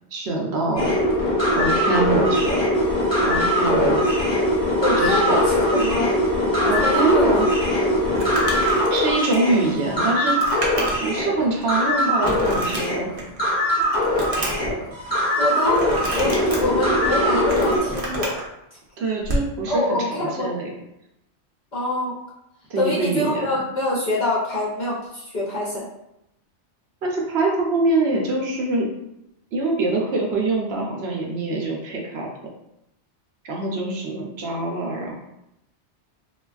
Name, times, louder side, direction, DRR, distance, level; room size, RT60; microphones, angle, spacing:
voice 1, 0.1-0.9 1.5-2.7 3.2-4.0 5.0-5.4 6.6-7.5 8.9-10.4 11.0-13.1 19.0-20.7 22.7-23.6 27.0-28.9 29.5-32.3 33.4-35.1, right 2 dB, 70° right, -1 dB, 0.8 m, -24 dB
sound 1, 0.8-17.8, left 1 dB, 25° left, 1.0 m, -21 dB
voice 2, 4.8-6.1 6.6-7.6 15.4-18.3 18.7-18.8 19.7-20.5 21.7-22.2 22.8-25.9, left 1 dB, 55° left, -5 dB, 0.6 m, -25 dB
Crumpling crinkling, 8.0-11.2 11.6-11.7 12.2-13.4 13.8-14.7 15.7-16.6 17.2-18.4 19.2-19.5, right 1 dB, 45° right, 0.5 m, -29 dB
3.2 x 2.2 x 2.3 m, 0.85 s
omnidirectional pair, 1.2 m